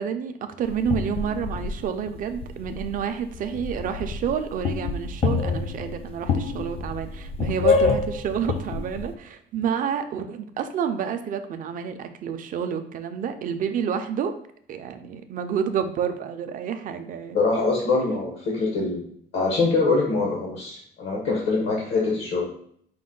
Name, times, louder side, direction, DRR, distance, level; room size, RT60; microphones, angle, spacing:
voice 1, 0.0-14.3 14.7-17.4, right 7 dB, 50° right, 8 dB, 0.4 m, -29 dB
sound 1, 0.6-3.0 3.3-9.1, left 4 dB, 35° left, 0.4 m, -27 dB
voice 2, 17.3-19.0 19.3-22.5, left 3 dB, 75° left, -2 dB, 1.1 m, -24 dB
5.1 x 2.1 x 3.7 m, 0.63 s
cardioid pair, 140°, 18 cm